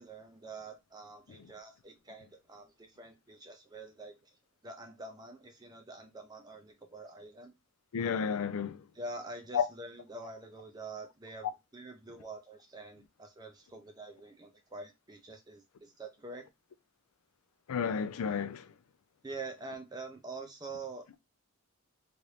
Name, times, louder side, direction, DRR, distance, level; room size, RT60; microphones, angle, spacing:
voice 1, 0.0-4.1 4.6-7.5 8.9-16.4 19.2-21.2, right 3 dB, 15° right, 0.4 m, -46 dB
voice 2, 7.9-8.8 9.5-9.7 17.7-18.7, left 7 dB, 75° left, 0.4 m, -32 dB
3.0 x 2.6 x 3.1 m
head